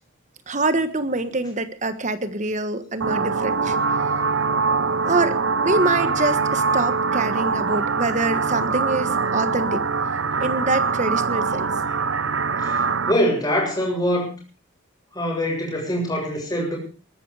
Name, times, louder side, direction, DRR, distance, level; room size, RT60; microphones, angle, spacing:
voice 1, 0.5-3.7 5.0-9.8 10.4-11.7, right 2 dB, 35° right, 11 dB, 1.4 m, -25 dB
sound 1, 3.0-13.1, right 4 dB, 70° right, 0.8 m, -23 dB
voice 2, 13.1-14.3 15.1-16.8, equal, 20° left, 0 dB, 7.5 m, -23 dB
21.0 x 13.0 x 4.9 m, 0.36 s
head